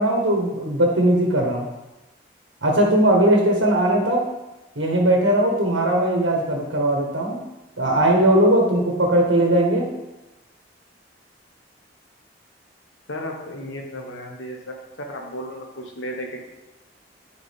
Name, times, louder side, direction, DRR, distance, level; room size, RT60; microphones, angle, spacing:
voice 1, 0.0-1.7 2.6-4.2 4.8-7.4 7.8-9.8, right 1 dB, 85° right, 0 dB, 1.3 m, -19 dB
voice 2, 13.1-16.4, equal, 85° left, 1 dB, 1.4 m, -34 dB
9.5 x 5.0 x 3.6 m, 1.0 s
head